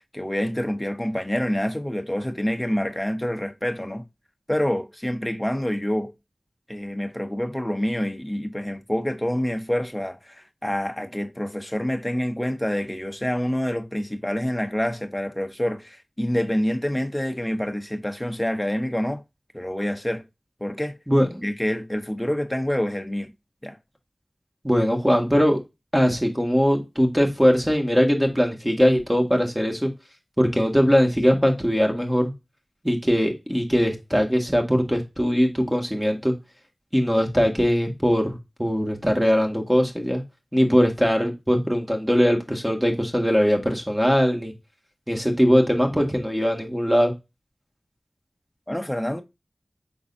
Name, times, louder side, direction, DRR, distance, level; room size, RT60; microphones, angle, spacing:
voice 1, 0.1-4.1 4.5-6.1 6.7-19.2 19.5-20.2 20.6-21.0 21.4-23.3 23.6-23.8 48.7-49.2, equal, 10° left, 0.9 m, -27 dB
voice 2, 21.1-21.5 24.6-25.6 25.9-29.9 30.4-32.3 32.8-36.3 36.9-40.2 40.5-44.5 45.1-47.1, equal, 10° right, 1.6 m, -21 dB
5.3 x 3.9 x 2.6 m
wide cardioid pair, 50°, 0 cm